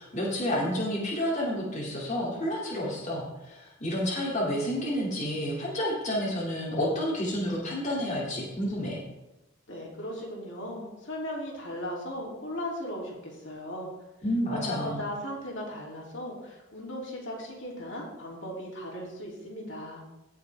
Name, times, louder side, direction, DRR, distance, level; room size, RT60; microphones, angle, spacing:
voice 1, 0.0-9.0 14.2-15.0, equal, 35° left, -4 dB, 2.3 m, -30 dB
voice 2, 9.7-13.9 14.5-20.0, equal, 70° left, -3 dB, 2.8 m, -37 dB
16.5 x 6.5 x 3.4 m, 0.94 s
head